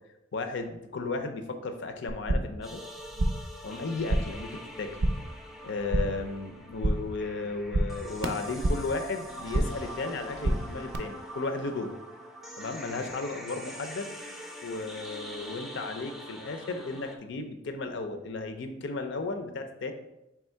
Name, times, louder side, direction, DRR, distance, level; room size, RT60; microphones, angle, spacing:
voice 1, 0.3-2.8 3.6-5.0 5.6-11.9 12.6-14.1 14.6-19.9, left 3 dB, 65° left, 6 dB, 0.5 m, -34 dB
sound 1, 2.1-2.6 2.9-3.5 3.8-4.5 4.7-5.3 5.6-6.3 6.6-7.2 7.4-9.0 9.3-9.9 10.2-11.0, right 1 dB, 65° right, 0.5 m, -29 dB
sound 2, 2.6-17.2, equal, ahead, 0.4 m, -44 dB
3.5 x 2.9 x 4.4 m, 0.90 s
head